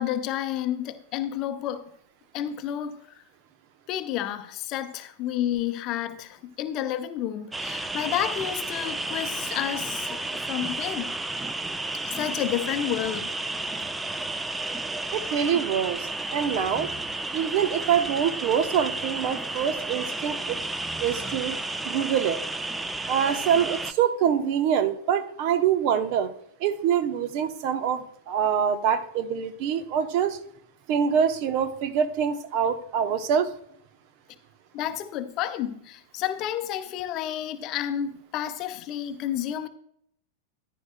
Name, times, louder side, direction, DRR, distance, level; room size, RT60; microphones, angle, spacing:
voice 1, 0.0-1.9 2.3-3.0 3.9-11.2 12.0-13.3 34.7-39.7, left 11 dB, 40° left, 0.7 m, -30 dB
sound 1, 7.5-23.9, right 2 dB, 10° right, 0.6 m, -32 dB
voice 2, 15.1-16.9 17.3-20.6 21.0-21.6 21.8-22.4 23.1-26.3 26.6-30.4 30.9-33.5, right 8 dB, 45° right, 0.9 m, -25 dB
14.0 x 11.0 x 2.2 m
figure-of-eight pair, 90°, 0 cm